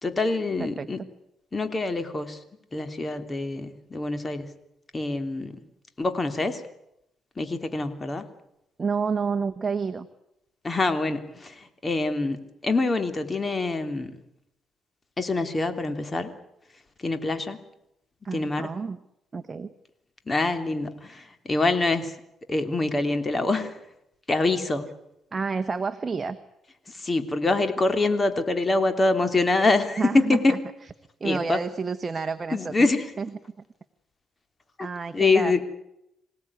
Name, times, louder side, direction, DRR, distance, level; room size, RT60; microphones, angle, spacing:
voice 1, 0.0-1.0 1.5-2.4 2.7-4.5 4.9-5.6 6.0-6.6 7.4-8.2 10.6-14.1 15.2-16.3 17.0-17.6 18.3-18.7 20.3-22.1 22.5-23.8 24.3-24.9 26.9-30.5 31.2-31.6 32.5-33.1 34.8-34.9 35.1-35.6, left 3 dB, 25° left, 9 dB, 3.2 m, -25 dB
voice 2, 8.8-10.1 18.2-19.0 19.3-19.7 25.3-26.4 30.0-30.6 31.2-32.9 33.2-33.3 34.8-35.6, right 5 dB, 30° right, 9 dB, 1.3 m, -29 dB
26.5 x 17.5 x 9.8 m, 0.83 s
cardioid pair, 90°, 0 cm